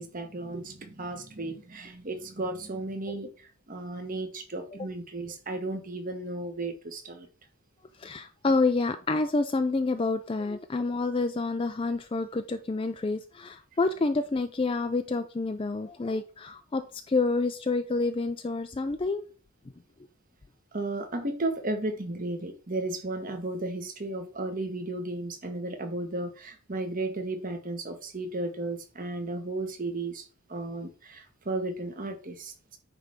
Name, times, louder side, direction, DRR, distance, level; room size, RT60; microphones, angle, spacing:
voice 1, 0.0-7.3 20.7-30.2 30.5-32.8, right 2 dB, 35° right, 1.3 m, -34 dB
voice 2, 8.0-16.8 17.1-19.2, left 3 dB, 25° left, 0.4 m, -28 dB
9.5 x 3.4 x 5.1 m
head